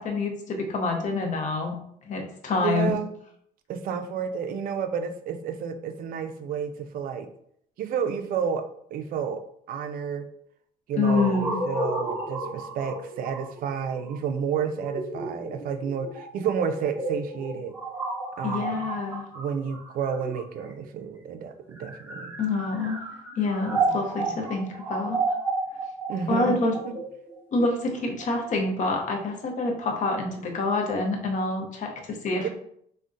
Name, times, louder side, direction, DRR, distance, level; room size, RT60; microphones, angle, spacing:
voice 1, 0.0-1.8 2.0-2.9 11.0-11.6 18.4-19.3 22.4-23.0 23.4-25.2 26.3-26.7 27.5-32.5, left 3 dB, 45° left, 2 dB, 0.7 m, -27 dB
voice 2, 2.6-3.1 3.7-7.3 7.8-8.6 8.9-9.4 9.7-10.3 10.9-17.8 18.4-18.8 19.3-22.4 23.7-24.4 26.1-26.9 32.3-32.5, right 7 dB, 60° right, 8 dB, 0.4 m, -31 dB
sound 1, 11.0-20.9 21.6-28.6, right 3 dB, 15° right, 0.6 m, -32 dB
3.5 x 2.1 x 2.6 m, 0.68 s
cardioid pair, 110°, 17 cm